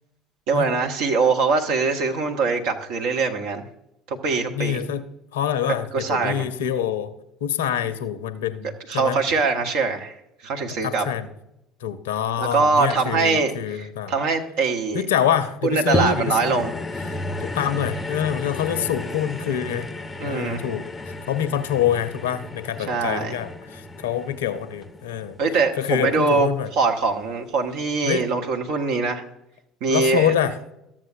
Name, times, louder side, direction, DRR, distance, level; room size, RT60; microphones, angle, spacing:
voice 1, 0.5-3.6 4.1-4.8 5.9-6.4 8.9-10.1 10.4-11.0 12.4-15.0 15.6-16.7 20.2-20.7 22.9-23.3 25.4-29.2 29.8-30.3, right 4 dB, 60° right, 3 dB, 1.0 m, -23 dB
voice 2, 4.5-7.1 7.4-9.2 10.8-11.3 11.8-14.1 14.9-16.7 17.1-19.9 20.2-25.4 25.8-26.7 28.0-28.2 29.9-30.6, left 9 dB, 70° left, 13 dB, 0.6 m, -26 dB
sound 1, 15.9-26.4 27.0-27.1, left 2 dB, 15° left, 0.6 m, -33 dB
13.5 x 7.4 x 2.6 m, 0.84 s
figure-of-eight pair, 60°, 0 cm